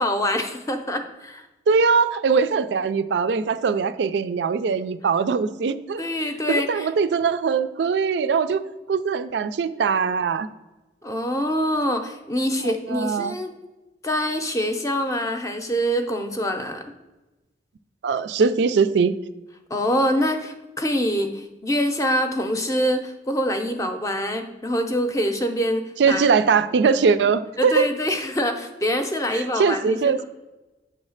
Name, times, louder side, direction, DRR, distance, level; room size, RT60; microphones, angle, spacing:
voice 1, 0.0-1.5 6.0-6.9 11.0-13.5 14.0-16.8 19.7-25.8 26.1-26.2 26.8-26.9 27.6-30.2, equal, 20° left, 6 dB, 0.5 m, -25 dB
voice 2, 1.7-6.0 6.5-8.6 8.9-10.5 12.6-13.4 18.0-19.1 26.0-27.9 29.3-30.2, right 5 dB, 75° right, 11 dB, 0.4 m, -21 dB
7.8 x 3.2 x 6.3 m, 1.1 s
head